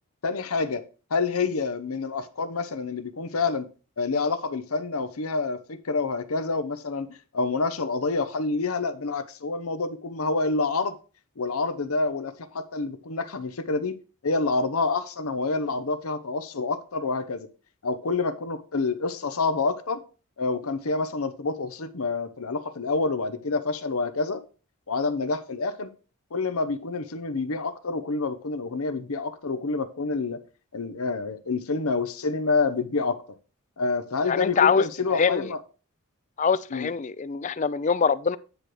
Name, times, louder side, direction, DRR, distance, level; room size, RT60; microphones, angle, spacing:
voice 1, 0.2-0.8 1.1-3.7 4.0-11.0 11.4-14.0 14.2-17.5 17.8-20.0 20.4-24.4 24.9-25.9 26.3-30.4 30.7-33.2 33.8-35.6 36.7-36.9, left 3 dB, 85° left, 0.8 m, -27 dB
voice 2, 34.2-35.5 36.4-38.4, left 5 dB, 35° left, 0.4 m, -24 dB
9.9 x 3.4 x 6.1 m
head